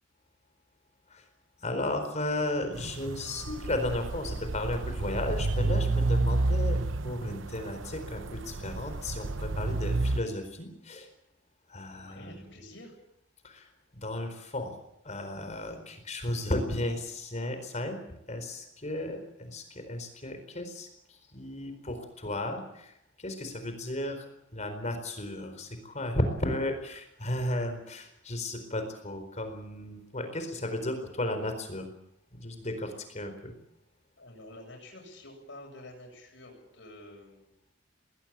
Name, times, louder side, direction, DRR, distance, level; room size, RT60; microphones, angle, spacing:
voice 1, 1.6-6.8 7.0-11.1 11.7-12.6 13.4-13.7 13.9-14.8 15.0-31.9 32.3-33.5, left 1 dB, 40° left, 7 dB, 4.4 m, -34 dB
sound 1, 2.7-10.2, right 2 dB, 85° right, 0.9 m, -30 dB
voice 2, 11.9-13.0 34.2-37.6, left 1 dB, 70° left, 1 dB, 7.8 m, -49 dB
20.0 x 19.0 x 8.9 m, 0.80 s
head